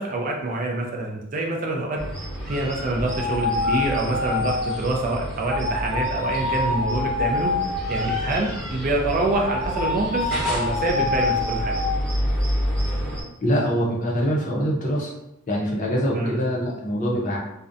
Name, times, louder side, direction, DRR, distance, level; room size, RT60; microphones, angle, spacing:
voice 1, 0.0-2.0 2.5-7.5 7.9-11.8 16.2-16.4, right 2 dB, 40° right, 0 dB, 0.3 m, -26 dB
sound 1, 2.0-13.2, equal, 5° left, 0.8 m, -30 dB
sound 2, 3.1-4.8 5.5-8.4 9.3-12.0, left 3 dB, 85° left, 0.6 m, -26 dB
voice 2, 13.4-15.1 15.5-17.4, equal, 35° left, -3 dB, 0.5 m, -24 dB
2.5 x 2.1 x 2.5 m, 0.86 s
head